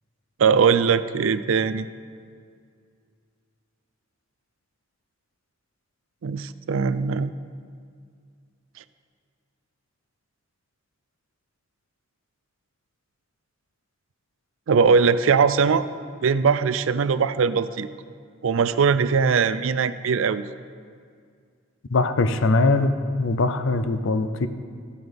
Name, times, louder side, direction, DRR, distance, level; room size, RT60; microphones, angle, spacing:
voice 1, 0.4-1.9 6.2-7.3 14.7-15.9 16.2-17.9 18.4-20.5, right 5 dB, 75° right, 14 dB, 0.4 m, -20 dB
voice 2, 21.9-24.5, left 2 dB, 65° left, 10 dB, 0.6 m, -21 dB
14.0 x 9.6 x 3.5 m, 2.1 s
head